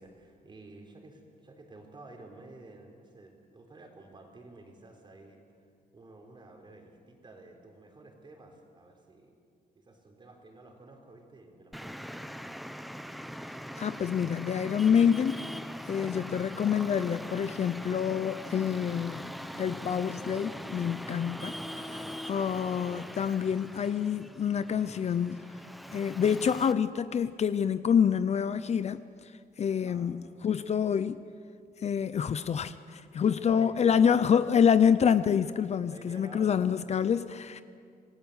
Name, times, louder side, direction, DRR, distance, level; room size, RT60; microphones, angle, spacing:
voice 1, 0.0-9.3 9.7-12.6 29.8-30.2 33.3-34.0 35.9-37.1, right 2 dB, 30° right, 3.7 m, -52 dB
Traffic noise roadway noise, 11.7-26.7, equal, ahead, 0.7 m, -41 dB
voice 2, 13.8-15.4 15.9-21.6 21.9-25.5 25.9-29.0 29.6-31.2 31.8-37.6, left 7 dB, 45° left, 0.6 m, -27 dB
27.5 x 19.0 x 8.1 m
wide cardioid pair, 165°, 16 cm